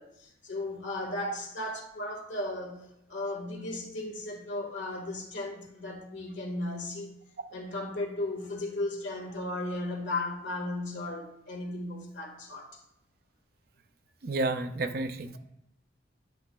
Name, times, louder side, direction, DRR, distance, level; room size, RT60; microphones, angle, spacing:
voice 1, 0.0-2.8 3.1-7.2 7.5-12.7, left 2 dB, 90° left, 1.6 m, -35 dB
voice 2, 14.2-15.4, right 2 dB, 55° right, 0.5 m, -31 dB
10.5 x 5.9 x 2.2 m
head